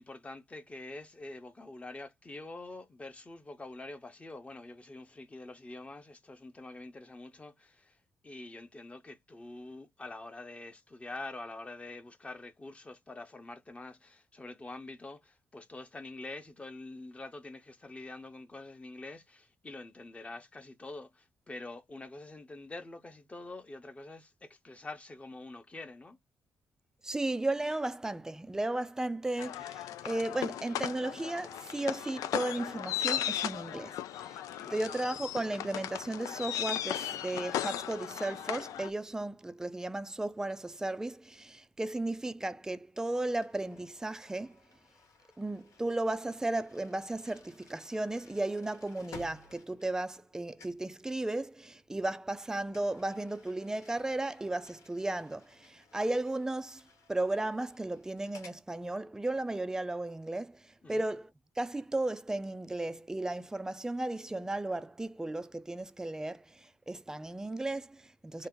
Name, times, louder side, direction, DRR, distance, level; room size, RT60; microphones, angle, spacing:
voice 1, 0.0-8.0 8.2-26.2 34.6-34.8 60.8-61.1 68.4-68.5, left 2 dB, 20° left, 0.8 m, -46 dB
voice 2, 27.0-34.4 34.7-44.6 45.4-56.8 57.1-61.3 61.6-68.5, right 2 dB, 10° right, 0.4 m, -35 dB
sound 1, 29.4-38.9, left 11 dB, 90° left, 0.3 m, -36 dB
sound 2, 43.3-50.3 50.6-50.9 52.7-58.6, left 4 dB, 70° left, 1.1 m, -57 dB
2.8 x 2.5 x 3.7 m
cardioid pair, 90°, 6 cm